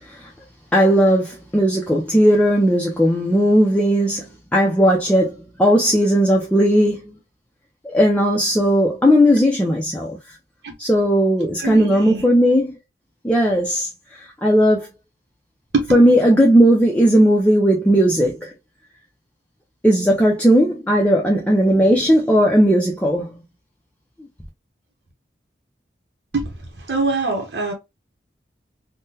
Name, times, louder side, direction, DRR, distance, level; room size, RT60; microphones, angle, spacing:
voice 1, 0.7-4.2 4.5-7.0 7.8-10.2 10.8-12.7 13.2-13.9 14.4-14.9 15.9-18.5 19.8-23.3, equal, 10° left, 0.5 m, -16 dB
voice 2, 11.6-12.2 15.7-15.8 26.3-26.5 26.8-27.7, right 3 dB, 80° right, 0.9 m, -23 dB
3.6 x 2.1 x 2.7 m
head